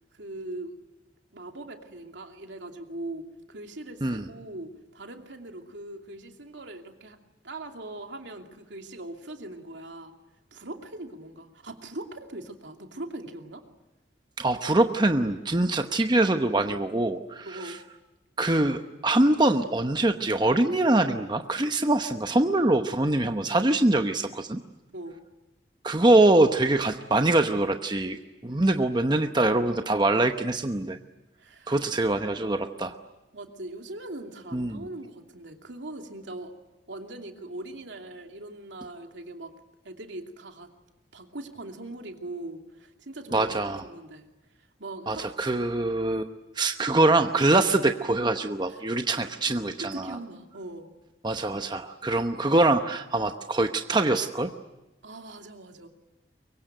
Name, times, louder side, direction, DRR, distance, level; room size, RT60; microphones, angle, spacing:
voice 1, 0.1-0.8 1.3-7.2 7.4-10.1 10.5-13.6 17.4-17.8 24.9-25.2 31.4-31.8 33.3-36.5 36.9-39.5 39.8-40.7 41.1-43.5 43.8-44.3 44.8-45.3 48.7-48.8 49.4-49.5 49.8-50.9 55.0-55.9, right 2 dB, 80° right, 3 dB, 2.7 m, -40 dB
voice 2, 14.4-17.7 18.4-24.6 25.8-28.2 28.4-31.0 31.7-33.0 34.5-34.8 43.3-43.8 45.1-46.3 46.6-50.2 51.2-54.5, right 2 dB, 25° right, 6 dB, 0.9 m, -24 dB
24.0 x 23.5 x 9.1 m, 1.0 s
head